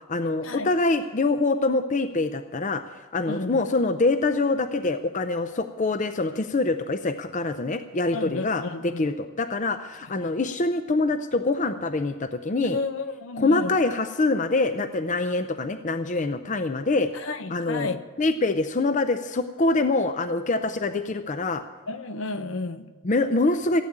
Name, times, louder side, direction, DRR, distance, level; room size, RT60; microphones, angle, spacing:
voice 1, 0.1-2.8 3.1-12.8 13.4-17.1 17.5-17.9 18.2-21.6 23.0-23.8, left 3 dB, 35° left, 9 dB, 0.6 m, -25 dB
voice 2, 3.3-3.6 8.1-9.1 10.2-10.3 12.7-13.8 17.1-18.0 21.9-22.9, left 3 dB, 65° left, 11 dB, 0.8 m, -32 dB
15.5 x 8.8 x 8.6 m, 1.3 s
head